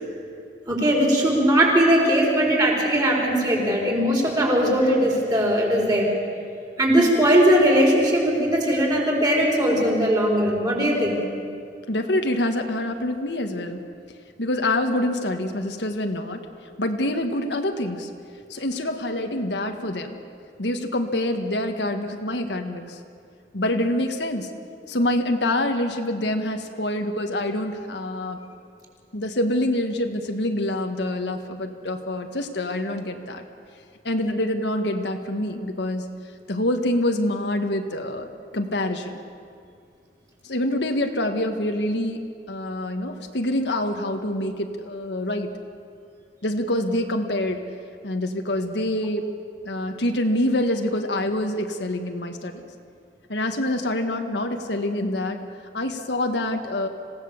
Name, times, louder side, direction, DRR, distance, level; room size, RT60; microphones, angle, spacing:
voice 1, 0.7-6.1 6.8-11.2, equal, 25° right, -1 dB, 4.4 m, -19 dB
voice 2, 11.9-13.8 14.4-16.4 16.8-18.1 18.5-20.2 20.6-23.0 23.5-24.5 24.9-28.4 29.1-33.4 34.0-36.1 36.5-38.3 38.5-39.2 40.4-42.2 42.5-45.5 46.4-47.6 48.0-49.3 49.6-52.7 53.3-55.4 55.7-56.9, left 1 dB, 75° left, 5 dB, 1.5 m, -26 dB
26.5 x 17.0 x 7.2 m, 2.3 s
head